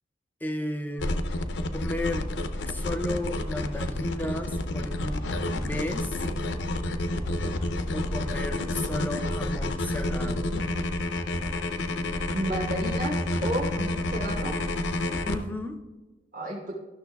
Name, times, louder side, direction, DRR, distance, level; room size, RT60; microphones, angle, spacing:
voice 1, 0.4-1.2 1.7-2.3 2.7-5.2 5.6-6.2 7.9-10.5 15.3-15.7, left 1 dB, 10° left, 5 dB, 0.5 m, -34 dB
sound 1, 1.0-15.4, left 1 dB, 85° left, 0.6 m, -29 dB
voice 2, 12.3-13.1 13.4-14.5 16.3-16.7, right 1 dB, 50° right, -5 dB, 1.0 m, -31 dB
12.5 x 6.4 x 2.3 m, 1.2 s
head